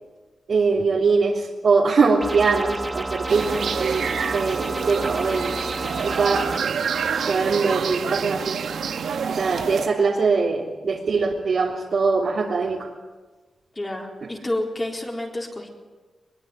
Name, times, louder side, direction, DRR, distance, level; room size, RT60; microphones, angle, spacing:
voice 1, 0.5-6.6 7.2-8.6 9.3-12.9, right 4 dB, 65° right, -4 dB, 3.3 m, -22 dB
sound 1, 2.2-6.6, right 2 dB, 25° right, 1.3 m, -31 dB
sound 2, 3.3-9.9, right 6 dB, 90° right, 1.5 m, -27 dB
voice 2, 13.8-15.7, left 1 dB, 25° left, -1 dB, 4.2 m, -29 dB
22.5 x 22.0 x 9.3 m, 1.3 s
wide cardioid pair, 120°, 0 cm